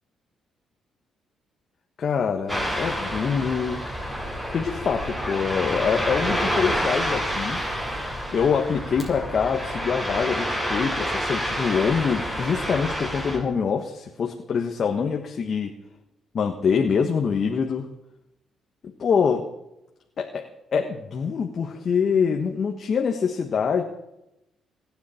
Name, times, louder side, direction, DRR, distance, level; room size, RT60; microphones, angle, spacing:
voice 1, 2.0-3.8 4.5-7.6 8.3-15.7 16.3-17.9 19.0-19.4 20.2-20.4 20.7-23.8, left 6 dB, 55° left, 3 dB, 1.5 m, -25 dB
Ocean, 2.5-13.4, equal, 15° right, 7.2 m, -28 dB
27.0 x 9.7 x 4.5 m, 0.87 s
cardioid pair, 90°, 0 cm